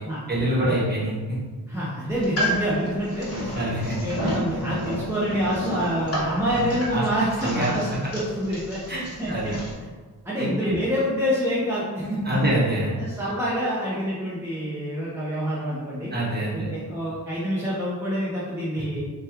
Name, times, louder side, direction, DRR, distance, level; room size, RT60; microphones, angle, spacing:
voice 1, 0.3-1.1 3.5-4.1 6.5-7.0 7.4-8.0 8.9-9.6 10.4-10.8 12.2-13.0 16.1-16.7, right 1 dB, 25° right, -7 dB, 1.0 m, -26 dB
voice 2, 1.7-3.5 4.0-7.9 8.1-8.8 9.2-9.5 10.2-12.5 13.0-16.1 16.5-19.0, equal, 5° right, -9 dB, 0.6 m, -27 dB
sound 1, 2.1-9.7, equal, 35° left, 1.0 m, -31 dB
2.9 x 2.2 x 3.5 m, 1.4 s
wide cardioid pair, 90°, 40 cm